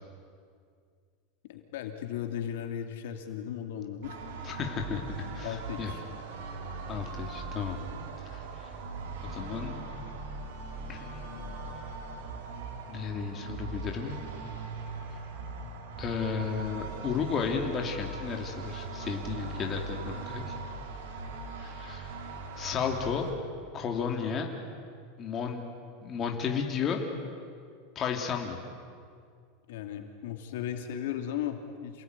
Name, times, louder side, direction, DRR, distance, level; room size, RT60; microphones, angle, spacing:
voice 1, 1.5-4.2 5.4-6.0 29.7-32.0, left 10 dB, 75° left, 5 dB, 2.7 m, -36 dB
sound 1, 4.0-23.3, right 3 dB, 75° right, 4.0 m, -40 dB
voice 2, 4.4-5.9 6.9-7.8 8.3-8.7 9.2-9.7 10.9-11.5 12.9-14.2 16.0-20.5 21.6-22.2 22.6-23.3 23.7-24.5 25.2-25.7 26.0-27.0 27.9-28.6, left 6 dB, 25° left, 2 dB, 2.8 m, -33 dB
28.0 x 19.0 x 9.6 m, 2.2 s
supercardioid pair, 160°, 0 cm